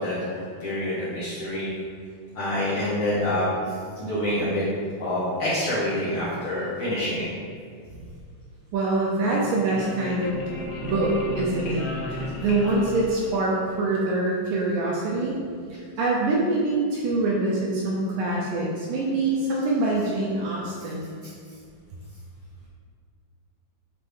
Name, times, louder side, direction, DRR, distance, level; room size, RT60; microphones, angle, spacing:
voice 1, 0.0-1.7 2.3-4.7 5.0-7.3, left 1 dB, 50° left, -11 dB, 1.9 m, -27 dB
voice 2, 8.7-10.5 10.8-11.8 12.1-15.4 16.0-21.1, right 2 dB, 75° right, -3 dB, 2.2 m, -25 dB
sound 1, 9.1-13.8, left 2 dB, 85° left, 1.6 m, -35 dB
9.6 x 4.4 x 3.4 m, 2.2 s
omnidirectional pair, 4.5 m